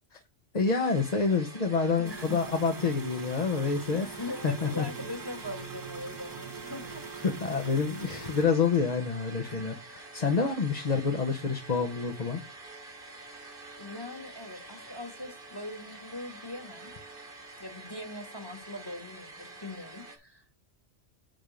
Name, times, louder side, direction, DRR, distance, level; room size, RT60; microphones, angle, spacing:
voice 1, 0.5-4.9 7.2-12.4, left 5 dB, 35° left, 1.0 m, -28 dB
sound 1, 0.7-20.2, right 2 dB, 50° right, 1.8 m, -47 dB
voice 2, 2.0-2.4 3.9-7.0 9.4-9.6 13.8-16.9 17.6-20.4, left 1 dB, 20° left, 1.5 m, -41 dB
sound 2, 2.0-8.4, right 6 dB, 20° right, 0.8 m, -43 dB
9.1 x 3.6 x 5.1 m
omnidirectional pair, 1.2 m